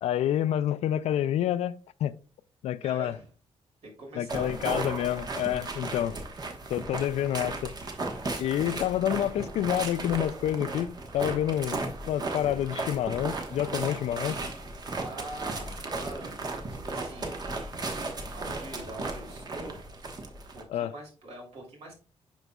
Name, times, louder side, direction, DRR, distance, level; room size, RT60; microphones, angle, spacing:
voice 1, 0.0-2.1 2.6-3.1 4.2-6.2 6.7-7.7 8.4-14.4 20.7-20.9, left 11 dB, 85° left, 0.4 m, -28 dB
voice 2, 2.8-3.3 3.8-4.7 6.9-7.2 8.0-8.8 15.0-16.4 16.7-17.4 18.0-19.8 20.5-21.9, right 1 dB, 70° right, 3.2 m, -44 dB
sound 1, 4.3-20.6, right 3 dB, 40° right, 1.1 m, -35 dB
10.5 x 3.9 x 2.3 m
cardioid pair, 120°, 11 cm